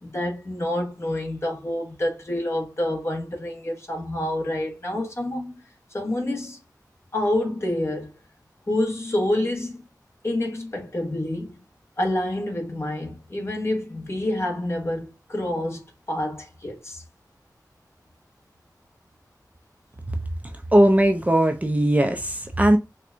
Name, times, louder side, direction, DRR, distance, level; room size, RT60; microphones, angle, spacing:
voice 1, 0.0-5.5 5.9-6.6 7.1-8.1 8.7-9.8 10.2-11.6 12.0-17.0, left 1 dB, 40° left, 1.2 m, -27 dB
voice 2, 20.7-22.8, right 1 dB, 20° right, 0.5 m, -18 dB
4.3 x 2.3 x 2.5 m
wide cardioid pair, 75°, 7 cm